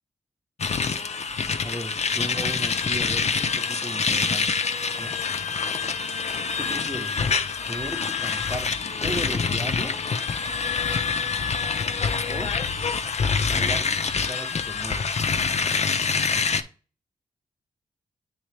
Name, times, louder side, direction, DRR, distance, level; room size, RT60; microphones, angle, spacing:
sound 1, 0.6-16.6, left 5 dB, 50° left, 0.6 m, -26 dB
voice 1, 1.6-4.5 5.0-5.2 6.6-7.3 7.7-10.1 12.3-12.6 13.4-14.0 14.3-15.2, right 1 dB, 15° right, 0.9 m, -36 dB
9.2 x 3.3 x 3.3 m
cardioid pair, 50°, 14 cm